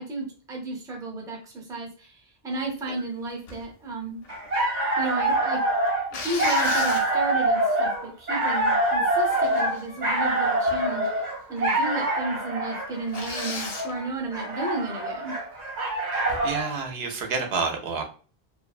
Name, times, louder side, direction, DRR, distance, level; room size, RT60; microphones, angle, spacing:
voice 1, 0.0-2.2 2.4-4.2 5.0-5.6 6.2-11.1 11.5-15.3, right 2 dB, 5° right, -1 dB, 0.4 m, -33 dB
sound 1, 3.5-3.7 4.2-5.1 6.1-7.4 8.0-8.1 8.5-8.9 9.2-10.1 10.6-10.9 11.2-11.3 11.9-12.0 12.3-12.4 13.1-13.9 16.2-16.6, left 4 dB, 75° left, 0.8 m, -36 dB
sound 2, 4.3-16.7, right 1 dB, 50° right, 0.7 m, -25 dB
voice 2, 16.1-18.0, right 4 dB, 80° right, 3 dB, 0.8 m, -29 dB
2.5 x 2.1 x 2.4 m, 0.38 s
omnidirectional pair, 1.0 m